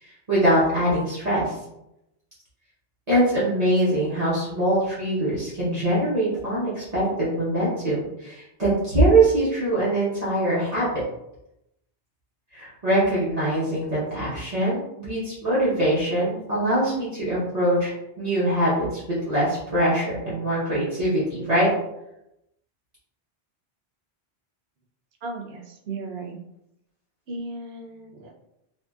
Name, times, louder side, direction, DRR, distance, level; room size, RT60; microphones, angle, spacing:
voice 1, 0.0-1.6 3.1-11.0 12.5-19.0 19.3-21.7, right 1 dB, 40° right, -10 dB, 0.9 m, -23 dB
voice 2, 25.2-26.4 27.3-28.3, right 3 dB, 75° right, 0 dB, 0.8 m, -35 dB
2.7 x 2.6 x 2.3 m, 0.84 s
omnidirectional pair, 1.1 m